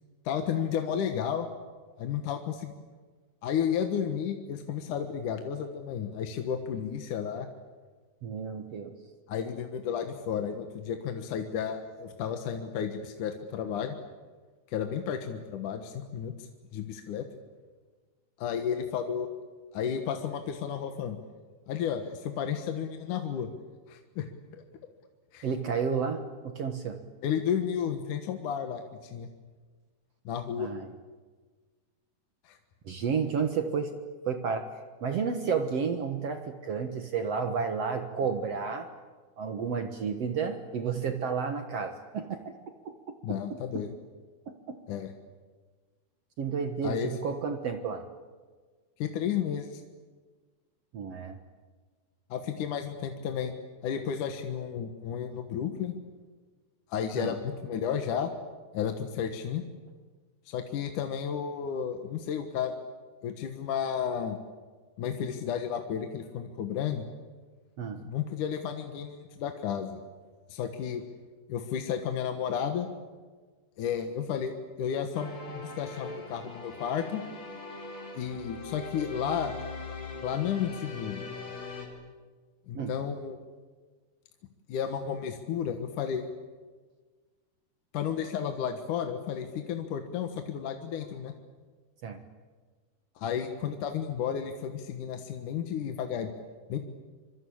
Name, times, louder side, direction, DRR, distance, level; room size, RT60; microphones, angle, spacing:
voice 1, 0.3-1.5 2.0-2.7 3.4-7.5 9.3-14.0 14.7-17.2 18.4-19.3 19.7-21.2 21.7-23.5 23.9-24.3 25.3-25.5 27.2-29.3 30.3-30.7 32.4-32.6 43.2-43.9 44.9-45.1 46.8-47.1 49.0-49.8 52.3-53.5 53.8-55.9 56.9-58.3 58.7-59.6 60.5-62.7 63.2-64.4 65.0-67.1 68.0-70.0 70.5-71.0 71.5-72.9 73.8-74.5 74.8-77.2 78.1-79.7 80.2-81.2 82.7-83.4 84.7-86.2 87.9-91.3 93.2-96.3 96.7-96.8, left 8 dB, 60° left, 5 dB, 2.6 m, -32 dB
voice 2, 8.2-8.9 25.4-27.0 30.6-30.9 32.8-33.9 34.2-34.7 35.0-38.9 39.4-43.8 44.5-44.8 46.4-48.0 50.9-51.4 57.1-57.3 67.8-68.0 82.7-83.0 92.0-92.2, right 6 dB, 60° right, 6 dB, 1.8 m, -32 dB
sound 1, 75.1-81.9, left 3 dB, 35° left, 4.9 m, -41 dB
25.5 x 24.0 x 8.7 m, 1.4 s
omnidirectional pair, 4.6 m